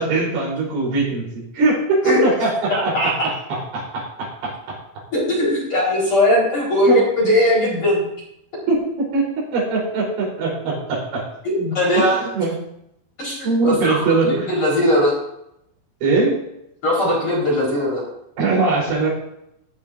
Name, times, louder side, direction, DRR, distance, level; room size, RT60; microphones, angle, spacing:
voice 1, 0.0-4.8 6.9-7.0 8.7-11.2 12.0-12.1 12.3-12.6 13.4-14.5 16.0-16.4 18.4-19.1, right 3 dB, 70° right, -4 dB, 6.4 m, -21 dB
voice 2, 2.7-3.1 5.1-8.0 11.4-12.2 13.2-14.0 14.5-15.2 16.8-18.0, left 1 dB, 25° left, -6 dB, 5.0 m, -19 dB
15.0 x 13.5 x 2.7 m, 0.79 s
omnidirectional pair, 5.8 m